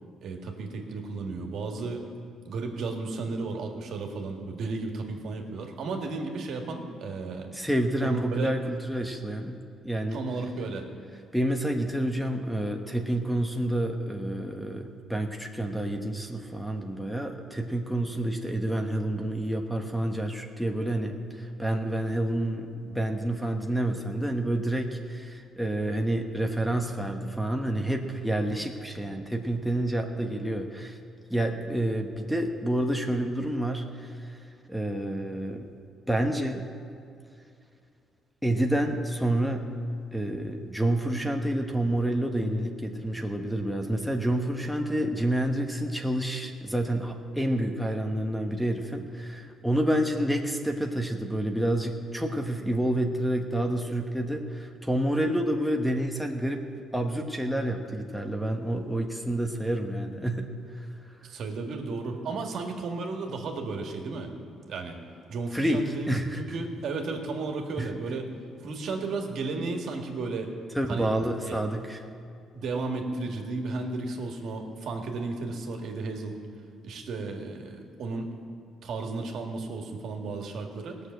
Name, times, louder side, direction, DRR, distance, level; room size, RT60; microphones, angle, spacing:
voice 1, 0.2-2.0 2.5-7.5 8.0-8.5 10.1-10.8 61.2-64.3 64.7-65.0 65.3-68.3 68.6-70.5 70.9-71.1 71.4-71.6 72.5-76.4 76.8-78.3 78.8-81.0, right 3 dB, 70° right, 2 dB, 1.9 m, -34 dB
voice 2, 7.5-10.2 11.3-31.0 31.3-34.3 34.7-35.7 36.1-36.6 38.4-39.7 40.1-56.7 56.9-60.5 60.7-60.9 65.5-66.4 67.8-67.9 70.7-72.0, right 1 dB, ahead, 4 dB, 1.1 m, -29 dB
18.0 x 6.6 x 8.0 m, 2.4 s
cardioid pair, 95°, 0 cm